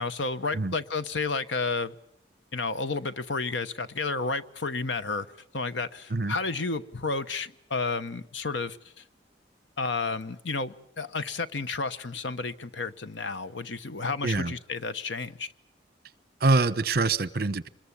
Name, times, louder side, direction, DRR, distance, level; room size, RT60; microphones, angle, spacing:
voice 1, 0.0-1.9 2.5-5.3 5.5-8.8 9.8-15.5, left 4 dB, 85° left, 1.1 m, -31 dB
voice 2, 14.2-14.5 16.4-17.7, right 3 dB, 55° right, 1.0 m, -25 dB
26.5 x 21.5 x 8.5 m
head